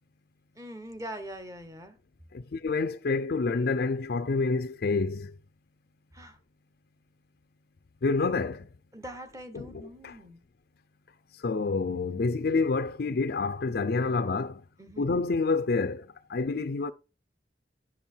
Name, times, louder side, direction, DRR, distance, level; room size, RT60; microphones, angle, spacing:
voice 1, 0.5-2.0 6.1-6.4 8.9-10.4 14.8-15.1, right 1 dB, 20° right, 1.1 m, -42 dB
voice 2, 2.3-5.4 8.0-8.7 9.5-10.2 11.3-14.6 15.0-16.9, left 4 dB, 60° left, 0.5 m, -28 dB
11.0 x 5.5 x 4.4 m
head